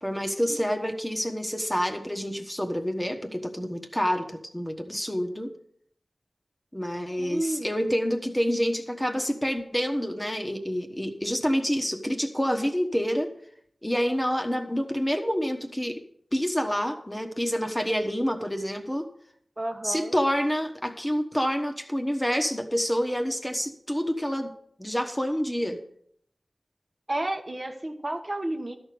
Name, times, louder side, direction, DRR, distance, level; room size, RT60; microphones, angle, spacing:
voice 1, 0.0-5.5 6.7-13.3 13.8-16.0 16.3-19.1 19.8-24.5 24.8-25.8, equal, 10° left, 4 dB, 1.2 m, -28 dB
voice 2, 7.2-7.7 19.6-20.1 27.1-28.7, right 1 dB, 35° right, 4 dB, 1.1 m, -31 dB
12.5 x 5.1 x 7.7 m, 0.66 s
wide cardioid pair, 75°, 0 cm